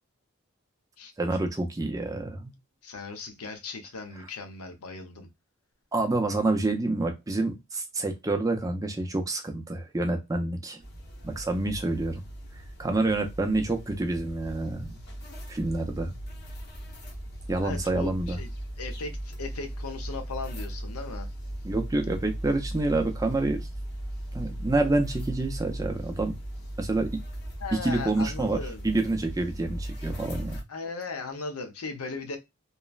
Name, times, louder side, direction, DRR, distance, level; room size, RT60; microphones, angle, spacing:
voice 1, 1.2-2.5 5.9-10.8 11.2-12.2 12.8-15.0 15.5-16.1 17.5-18.4 21.6-23.6 24.3-26.3 26.8-27.1 27.8-30.6, right 2 dB, 15° right, 0.4 m, -28 dB
voice 2, 2.8-5.3 17.6-18.5 18.8-21.3 27.6-28.9 30.7-32.4, left 4 dB, 90° left, 0.8 m, -37 dB
sound 1, 10.8-30.6, right 1 dB, 45° left, 0.9 m, -38 dB
3.0 x 2.1 x 2.2 m
head